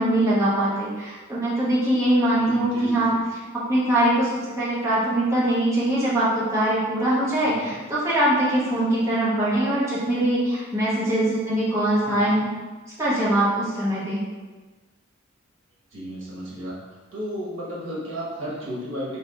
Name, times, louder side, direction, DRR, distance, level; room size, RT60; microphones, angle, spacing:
voice 1, 0.0-3.4 3.7-4.3 4.6-12.5 13.0-14.2, right 1 dB, 15° right, -9 dB, 0.8 m, -22 dB
voice 2, 2.3-3.2 7.4-7.8 12.0-12.4 15.9-16.8 17.1-19.2, right 1 dB, 70° right, -6 dB, 1.1 m, -33 dB
3.2 x 2.8 x 3.6 m, 1.3 s
head